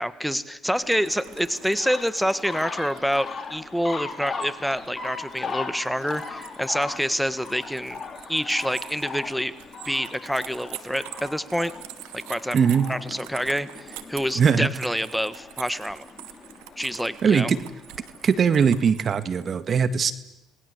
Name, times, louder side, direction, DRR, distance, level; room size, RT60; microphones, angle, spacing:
voice 1, 0.0-8.0 8.3-9.5 9.8-11.7 12.1-12.6 12.9-16.1 16.8-17.5, equal, ahead, 13 dB, 1.6 m, -27 dB
sound 1, 0.6-18.9, left 4 dB, 35° left, 4.3 m, -39 dB
sound 2, 0.7-19.5, right 15 dB, 85° right, 1.7 m, -45 dB
voice 2, 12.5-12.9 14.4-14.7 17.2-17.6 18.2-20.1, right 6 dB, 45° right, 12 dB, 1.9 m, -20 dB
28.0 x 20.5 x 8.3 m, 0.92 s
supercardioid pair, 70°, 0 cm